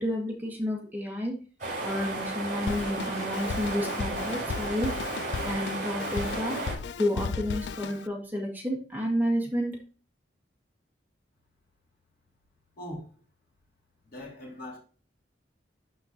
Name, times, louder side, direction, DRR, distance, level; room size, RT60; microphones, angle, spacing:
voice 1, 0.0-1.4 1.8-5.0 5.4-6.6 7.0-9.8, equal, 10° right, 1.7 m, -30 dB
sound 1, 1.6-6.7, right 2 dB, 45° right, 4.2 m, -34 dB
Drum kit, 2.7-8.1, left 5 dB, 80° left, 0.4 m, -36 dB
voice 2, 12.8-13.1 14.0-14.8, left 1 dB, 55° left, 3.0 m, -40 dB
12.0 x 4.4 x 2.9 m
head